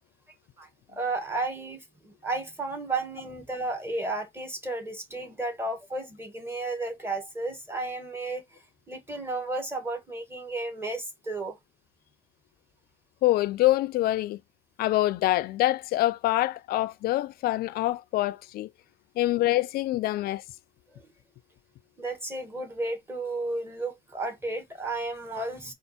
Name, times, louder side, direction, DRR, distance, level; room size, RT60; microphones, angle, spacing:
voice 1, 0.6-8.4 8.9-11.6 20.9-21.1 22.0-25.7, right 2 dB, 15° right, 1.5 m, -33 dB
voice 2, 13.2-14.4 14.8-18.7 19.2-20.4, left 16 dB, 65° left, 0.4 m, -25 dB
4.4 x 2.5 x 4.1 m
cardioid pair, 110°, 17 cm